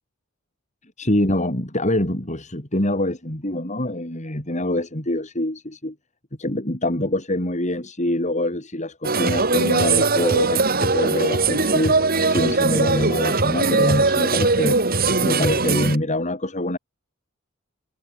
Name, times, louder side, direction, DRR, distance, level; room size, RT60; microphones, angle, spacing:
voice 1, 1.0-5.9 6.4-12.0 12.3-14.8 15.2-16.8, left 1 dB, 35° left, 4.8 m, -24 dB
sound 1, 9.0-16.0, right 3 dB, 45° right, 4.0 m, -20 dB
head